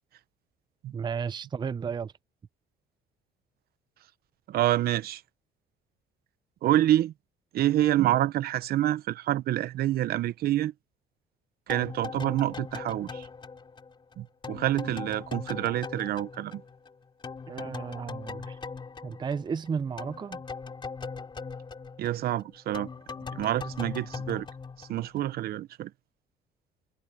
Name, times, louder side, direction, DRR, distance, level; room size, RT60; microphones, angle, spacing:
voice 1, 0.9-2.1 17.5-18.6 19.0-20.4, right 6 dB, 25° right, 0.6 m, -33 dB
voice 2, 4.5-5.2 6.6-7.1 7.5-10.7 11.7-13.3 14.2-16.6 22.0-22.9 23.3-24.5 24.8-25.9, right 13 dB, 65° right, 0.9 m, -27 dB
sound 1, 11.7-16.9 17.2-25.4, left 5 dB, 30° left, 2.6 m, -40 dB
cardioid pair, 110°, 17 cm